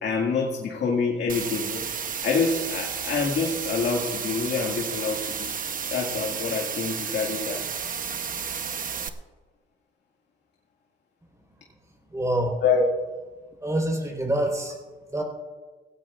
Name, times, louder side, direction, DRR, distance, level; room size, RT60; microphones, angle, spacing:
voice 1, 0.0-1.9 2.2-5.5 5.9-7.7 12.6-12.9, left 4 dB, 60° left, -1 dB, 2.1 m, -26 dB
sound 1, 1.3-9.1, right 6 dB, 45° right, 1.0 m, -32 dB
voice 2, 12.1-12.6 13.6-14.8 15.1-15.2, right 1 dB, 15° right, 1 dB, 4.6 m, -26 dB
18.0 x 16.5 x 2.6 m, 1.3 s
cardioid pair, 90°, 20 cm